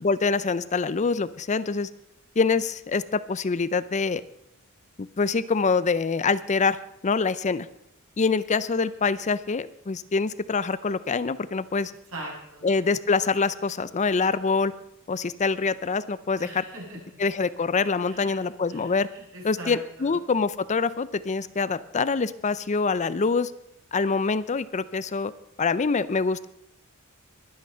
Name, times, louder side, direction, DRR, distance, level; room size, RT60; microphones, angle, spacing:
voice 1, 0.0-1.9 2.4-4.2 5.0-6.8 7.0-7.7 8.2-11.9 12.6-14.7 15.1-16.6 17.2-19.1 19.4-23.5 23.9-25.3 25.6-26.5, left 4 dB, 35° left, 16 dB, 0.5 m, -25 dB
voice 2, 12.1-12.6 16.4-17.0 18.1-18.3 18.7-20.2, right 1 dB, 65° right, -3 dB, 7.6 m, -41 dB
22.0 x 8.9 x 5.5 m, 0.78 s
head